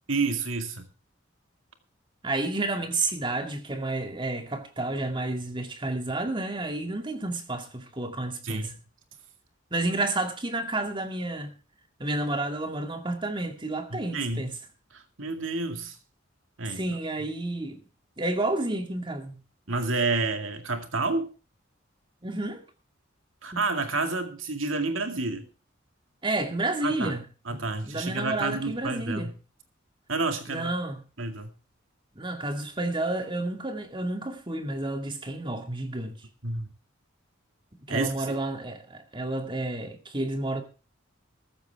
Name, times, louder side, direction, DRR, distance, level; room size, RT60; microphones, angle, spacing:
voice 1, 0.1-0.9 8.4-8.7 13.9-14.5 14.9-16.0 16.6-16.8 19.7-21.3 23.4-25.5 26.8-27.1 27.5-29.3 30.1-30.7 31.2-31.5 36.4-36.7 37.9-38.4, right 3 dB, 80° right, 2.2 m, -29 dB
voice 2, 2.2-8.7 9.7-11.5 12.0-14.5 16.7-17.8 18.2-19.4 22.2-22.6 23.5-23.6 26.2-27.2 27.5-29.3 30.5-31.0 32.2-36.2 37.9-40.6, right 2 dB, 25° right, 2.2 m, -30 dB
14.5 x 14.0 x 3.5 m
head